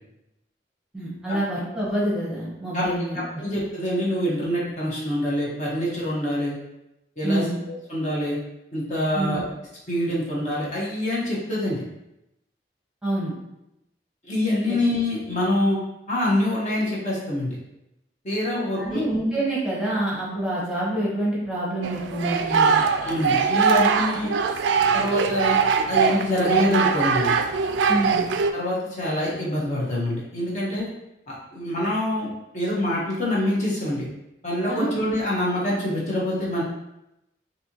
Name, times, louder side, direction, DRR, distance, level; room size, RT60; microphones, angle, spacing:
voice 1, 0.9-3.2 7.2-7.6 9.1-9.4 13.0-13.3 18.7-22.8 27.9-28.3 34.7-35.0, right 1 dB, 5° right, -7 dB, 1.0 m, -26 dB
voice 2, 3.1-6.6 7.2-8.4 8.7-9.5 9.9-11.8 14.2-15.8 16.1-17.6 18.2-19.0 23.0-24.3 24.9-25.6 25.9-27.4 28.5-30.9 31.3-32.3 32.5-34.1 34.4-36.6, left 1 dB, 40° left, -6 dB, 0.9 m, -25 dB
sound 1, 21.8-28.5, right 5 dB, 85° right, 0.3 m, -22 dB
4.2 x 2.7 x 2.8 m, 0.88 s
head